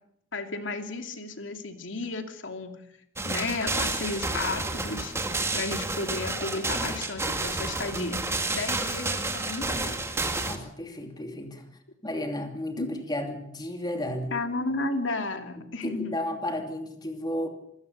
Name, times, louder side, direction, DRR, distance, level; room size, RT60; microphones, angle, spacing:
voice 1, 0.3-2.8 3.2-8.2 8.5-10.0 12.8-12.9 14.3-16.1, left 3 dB, 75° left, 6 dB, 2.6 m, -33 dB
sound 1, 3.2-10.6, right 2 dB, 15° right, 2.1 m, -30 dB
voice 2, 10.5-11.7 12.0-14.3 15.8-17.5, left 1 dB, 20° left, 4 dB, 2.6 m, -33 dB
26.5 x 16.5 x 6.8 m, 0.75 s
head